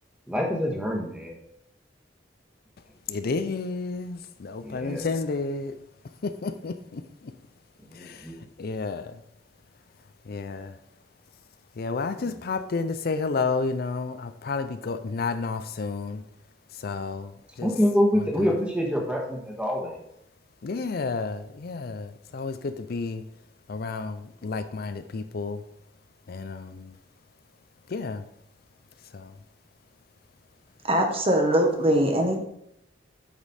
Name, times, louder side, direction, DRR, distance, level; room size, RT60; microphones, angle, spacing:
voice 1, 0.3-1.4 4.6-5.1 7.9-8.5 12.2-12.3 17.6-20.0, equal, 5° right, 0 dB, 1.4 m, -26 dB
voice 2, 3.1-5.8 6.2-7.3 7.9-8.3 8.6-9.2 10.3-10.8 11.8-16.2 16.8-17.3 17.6-17.7 18.4-18.5 20.6-23.2 23.7-25.6 26.3-26.9 27.9-28.2 29.1-29.3, left 4 dB, 55° left, 10 dB, 0.5 m, -31 dB
voice 3, 30.8-32.4, right 1 dB, 35° right, 3 dB, 1.1 m, -22 dB
8.0 x 5.2 x 4.2 m, 0.78 s
head